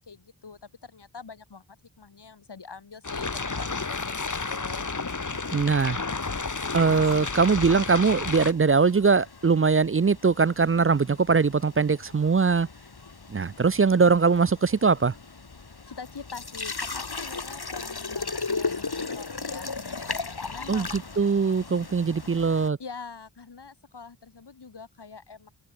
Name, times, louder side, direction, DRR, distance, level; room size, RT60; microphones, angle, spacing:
voice 1, 0.0-4.9 15.6-20.9 22.8-25.5, left 5 dB, 90° left, 3.0 m, -44 dB
sound 1, 3.0-8.5, left 4 dB, 50° left, 2.0 m, -31 dB
voice 2, 5.5-6.0 6.7-12.7 13.3-15.1 20.7-22.8, right 5 dB, 35° right, 0.5 m, -21 dB
sound 2, 6.9-22.7, left 4 dB, 70° left, 4.7 m, -37 dB
open air
wide cardioid pair, 50°, 40 cm